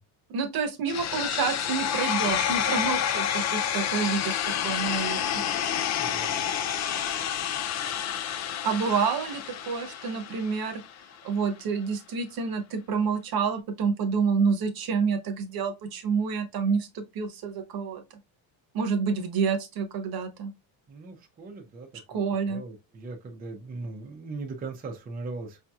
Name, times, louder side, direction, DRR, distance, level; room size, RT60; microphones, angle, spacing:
voice 1, 0.3-5.4 8.6-10.8 11.2-18.0 18.7-20.5 22.1-22.6, right 5 dB, 50° right, 0.9 m, -28 dB
sound 1, 0.9-10.9, left 9 dB, 40° left, 0.4 m, -29 dB
voice 2, 6.0-6.4 20.9-25.6, right 3 dB, 20° right, 0.6 m, -39 dB
4.9 x 2.8 x 2.3 m
cardioid pair, 145°, 46 cm